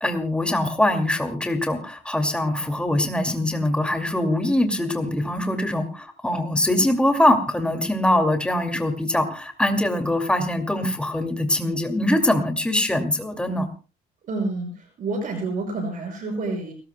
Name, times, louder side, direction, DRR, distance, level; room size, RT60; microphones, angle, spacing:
voice 1, 0.0-13.7, left 1 dB, 5° left, 5 dB, 2.4 m, -23 dB
voice 2, 14.3-14.7 15.0-16.7, right 3 dB, 55° right, 3 dB, 6.2 m, -28 dB
29.5 x 14.0 x 2.2 m, 0.33 s
cardioid pair, 110°, 17 cm